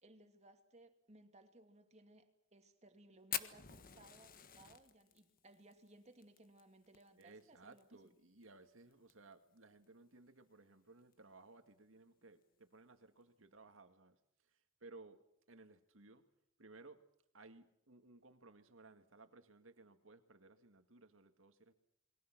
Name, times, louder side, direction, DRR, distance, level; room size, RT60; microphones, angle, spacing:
voice 1, 0.0-7.8, right 2 dB, 35° right, 2.5 m, -63 dB
Fire, 3.3-7.8 8.1-8.2 8.4-8.5 8.9-9.3 9.8-9.9 11.0-11.1, left 10 dB, 45° left, 1.5 m, -46 dB
voice 2, 7.2-15.2 15.5-16.3 16.6-17.0 17.3-21.7, right 3 dB, 75° right, 2.1 m, -60 dB
28.5 x 22.5 x 6.1 m
head